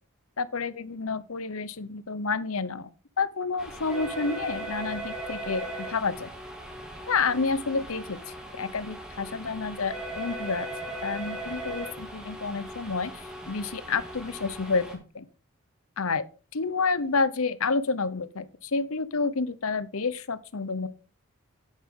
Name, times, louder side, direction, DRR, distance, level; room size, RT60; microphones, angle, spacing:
voice 1, 0.4-2.9 3.2-6.3 7.1-10.7 11.0-14.8 15.1-15.3 16.0-16.3 16.5-20.9, left 4 dB, 70° left, 0.9 m, -29 dB
sound 1, 3.6-15.0, right 1 dB, 5° right, 2.4 m, -38 dB
11.0 x 8.4 x 3.8 m
head